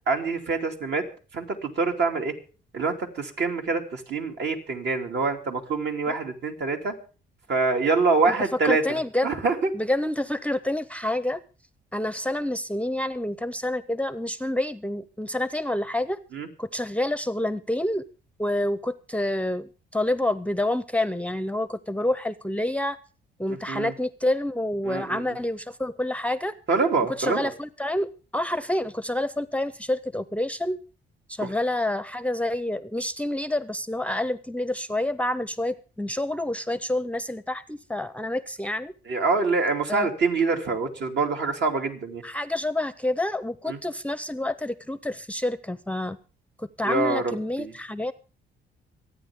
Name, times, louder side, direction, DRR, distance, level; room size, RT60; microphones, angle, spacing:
voice 1, 0.1-1.1 1.3-2.3 2.7-6.9 7.5-9.7 16.3-16.5 23.5-23.9 24.8-25.2 26.7-27.5 39.1-42.2 43.7-43.8 46.8-47.7, right 4 dB, 60° right, 3 dB, 2.8 m, -25 dB
voice 2, 8.6-9.3 9.7-11.4 11.9-16.2 16.6-18.0 18.4-23.0 23.4-26.5 27.1-28.1 28.3-30.8 31.3-38.9 39.9-40.1 42.2-46.2 46.6-48.1, left 1 dB, 5° left, 14 dB, 0.6 m, -28 dB
25.5 x 9.3 x 3.6 m, 0.37 s
cardioid pair, 90°, 20 cm